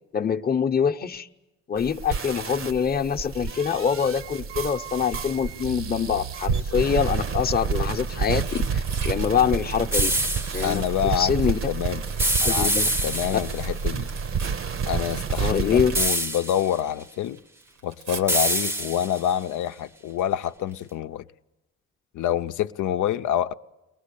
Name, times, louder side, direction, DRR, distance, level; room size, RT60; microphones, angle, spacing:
voice 1, 0.1-1.3 1.7-10.1 10.5-11.6 12.4-12.9 13.3-13.4 15.4-16.0, left 7 dB, 30° left, 0.9 m, -25 dB
sound 1, 1.8-16.1, right 6 dB, 45° right, 0.8 m, -29 dB
Tearing, 5.0-5.4 6.4-7.2 8.0-12.5 12.8-17.1 17.4-18.2 20.1-20.4 20.7-20.8, right 4 dB, 90° right, 1.6 m, -37 dB
sound 2, 9.9-10.7 12.2-13.6 15.9-16.7 18.3-19.3, right 1 dB, 10° right, 0.7 m, -25 dB
voice 2, 10.6-11.3 11.7-12.0 12.4-12.7 13.0-14.1 14.9-17.4 17.8-21.2 22.1-23.5, left 10 dB, 75° left, 0.7 m, -27 dB
23.0 x 19.0 x 8.4 m
cardioid pair, 90°, 30 cm